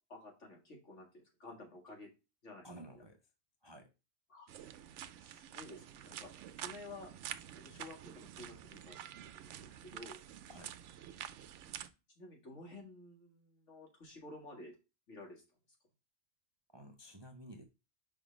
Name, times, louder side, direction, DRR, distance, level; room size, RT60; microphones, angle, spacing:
voice 1, 0.1-2.1 2.4-2.7 4.3-4.5 5.3-7.1 7.6-9.0 9.4-10.2 12.2-14.8 15.1-15.4, left 2 dB, 70° left, 0 dB, 2.2 m, -52 dB
voice 2, 2.6-3.2 3.6-3.9 10.5-10.8 16.7-17.6, right 1 dB, 30° right, 4 dB, 0.5 m, -52 dB
sound 1, 4.5-11.9, right 10 dB, 75° right, 0.9 m, -48 dB
5.4 x 3.7 x 5.0 m, 0.28 s
omnidirectional pair, 1.3 m